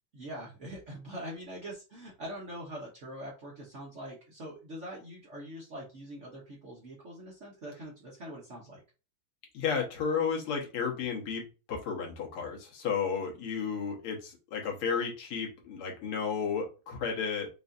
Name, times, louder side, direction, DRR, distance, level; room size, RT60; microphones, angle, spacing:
voice 1, 0.1-8.8, equal, 50° right, -3 dB, 0.9 m, -43 dB
voice 2, 9.5-17.5, left 6 dB, 90° left, 0 dB, 2.1 m, -33 dB
5.4 x 2.5 x 2.6 m, 0.32 s
omnidirectional pair, 2.4 m